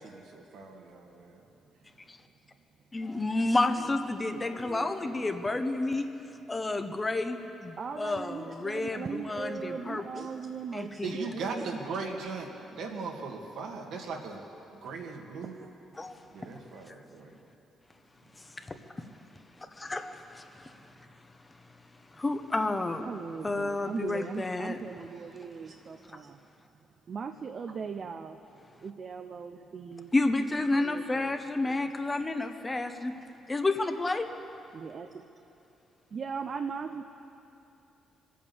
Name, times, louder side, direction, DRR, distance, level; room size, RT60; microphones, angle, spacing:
voice 1, 0.0-1.4 11.0-14.4 14.8-15.6 16.3-17.4, right 4 dB, 80° right, 1 dB, 2.0 m, -38 dB
voice 2, 2.9-6.1 6.5-10.3 10.7-11.1 16.0-16.1 16.9-17.0 18.6-18.7 19.8-20.7 22.1-23.1 23.4-24.8 30.1-33.1 33.5-34.3, left 2 dB, 20° left, 7 dB, 1.0 m, -30 dB
voice 3, 4.3-5.7 7.8-11.6 15.5-15.7 23.0-26.4 27.1-28.4 28.8-30.1 30.8-31.9 34.7-35.2 36.1-37.0, right 5 dB, 50° right, 6 dB, 0.7 m, -39 dB
23.5 x 8.6 x 7.1 m, 2.9 s
cardioid pair, 90°, 0 cm